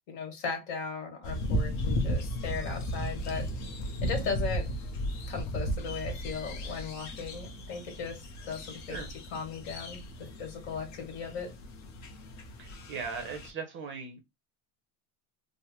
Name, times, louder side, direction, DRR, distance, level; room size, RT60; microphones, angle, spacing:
voice 1, 0.1-3.5 4.0-4.7 5.3-9.0 9.3-11.5, left 5 dB, 60° left, 1.7 m, -37 dB
sound 1, 1.2-13.5, equal, 45° left, 0.8 m, -35 dB
voice 2, 12.6-14.2, right 5 dB, 30° right, 0.6 m, -39 dB
3.2 x 2.1 x 3.0 m
supercardioid pair, 135°, 41 cm